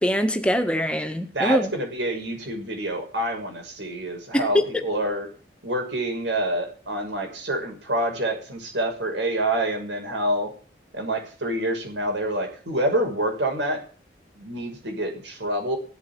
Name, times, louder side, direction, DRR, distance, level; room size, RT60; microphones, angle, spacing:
voice 1, 0.0-1.7 4.3-4.8, equal, 5° left, 6 dB, 1.7 m, -23 dB
voice 2, 1.3-5.3 5.6-10.5 10.9-13.8 14.4-15.8, right 1 dB, 90° right, 4 dB, 6.5 m, -27 dB
17.0 x 8.4 x 9.3 m, 0.39 s
head